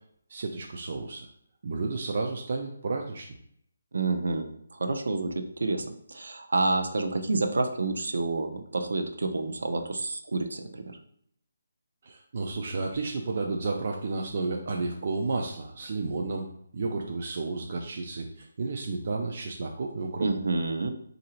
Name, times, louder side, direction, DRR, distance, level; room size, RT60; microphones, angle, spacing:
voice 1, 0.3-1.3 1.6-3.3 12.0-16.5 16.7-20.3, right 3 dB, 35° right, 1 dB, 0.4 m, -32 dB
voice 2, 3.9-11.0 20.2-20.9, right 3 dB, 75° right, 5 dB, 0.7 m, -29 dB
3.8 x 2.6 x 4.3 m, 0.67 s
hypercardioid pair, 175°, 0 cm